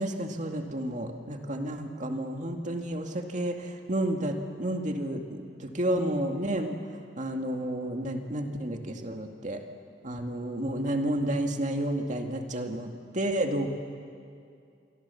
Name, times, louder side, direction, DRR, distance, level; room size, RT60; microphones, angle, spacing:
voice 1, 0.0-6.8 7.2-9.6 10.0-13.7, right 1 dB, 45° right, 3 dB, 2.3 m, -31 dB
27.5 x 24.5 x 7.2 m, 2.4 s
head